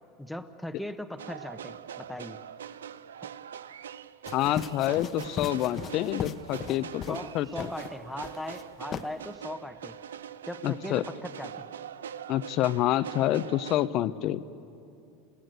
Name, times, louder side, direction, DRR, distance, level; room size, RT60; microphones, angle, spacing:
voice 1, 0.2-2.4 7.1-9.9 10.4-11.5, left 1 dB, ahead, 6 dB, 1.2 m, -38 dB
sound 1, 1.2-13.9, right 9 dB, 85° right, 0.5 m, -43 dB
voice 2, 4.3-7.7 10.6-11.0 12.3-14.4, left 13 dB, 55° left, 15 dB, 0.8 m, -28 dB
sound 2, 4.3-7.3 7.6-7.9 8.2-8.6 8.9-9.1, left 7 dB, 35° left, 1.0 m, -38 dB
28.5 x 17.0 x 8.0 m, 2.7 s
hypercardioid pair, 90°, 0 cm